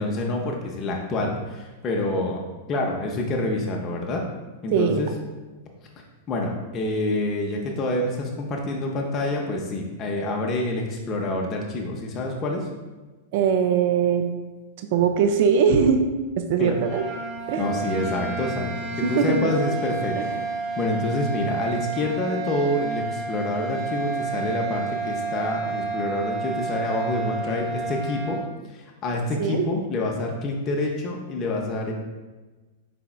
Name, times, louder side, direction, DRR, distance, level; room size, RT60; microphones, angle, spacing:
voice 1, 0.0-2.4 2.7-4.2 4.6-5.1 6.3-12.6 16.6-16.8 17.6-20.4 20.8-28.4 28.7-31.9, left 2 dB, 35° left, 0 dB, 0.6 m, -27 dB
voice 2, 4.7-5.0 13.3-14.3 14.8-17.1 17.5-17.7 19.0-19.5 20.2-20.3 29.4-29.7, right 6 dB, 55° right, 7 dB, 0.3 m, -21 dB
sound 1, 16.7-28.5, right 4 dB, 25° right, 0.7 m, -30 dB
4.7 x 3.4 x 2.3 m, 1.2 s
figure-of-eight pair, 100°, 0 cm